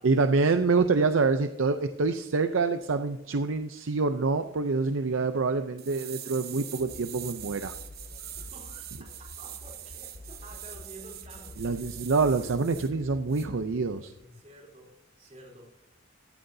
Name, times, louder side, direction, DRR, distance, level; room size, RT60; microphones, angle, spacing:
voice 1, 0.0-7.7 11.6-14.1, right 4 dB, 75° right, 8 dB, 0.6 m, -26 dB
sound 1, 5.8-12.9 13.3-13.5, right 11 dB, 50° right, 0.9 m, -43 dB
sound 2, 6.8-14.4, left 2 dB, 25° left, 0.5 m, -48 dB
voice 2, 8.4-9.1 9.4-11.6 14.3-15.7, right 1 dB, 35° right, -1 dB, 3.8 m, -50 dB
15.5 x 13.0 x 2.7 m, 0.87 s
head